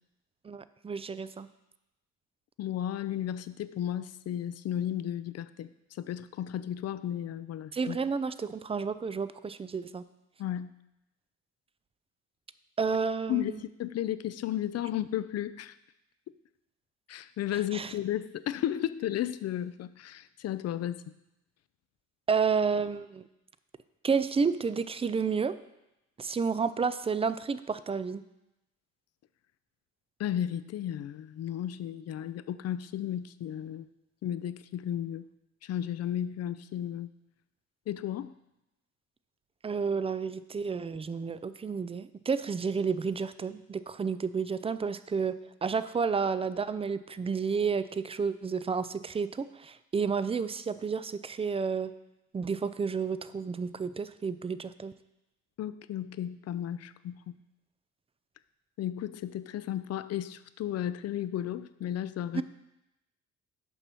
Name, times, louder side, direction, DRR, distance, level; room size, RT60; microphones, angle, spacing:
voice 1, 0.4-1.5 7.7-10.0 12.8-13.6 17.7-17.9 22.3-23.3 24.0-25.6 26.2-28.2 39.6-51.9 52.3-54.9 62.3-62.4, right 5 dB, 20° right, 14 dB, 0.3 m, -31 dB
voice 2, 2.6-5.7 6.0-8.0 10.4-10.7 13.3-15.7 17.1-21.0 30.2-33.9 34.2-35.3 35.6-37.1 37.9-38.3 55.6-57.4 58.8-62.4, left 11 dB, 55° left, 15 dB, 0.5 m, -34 dB
6.9 x 5.5 x 6.1 m, 0.91 s
cardioid pair, 90°, 30 cm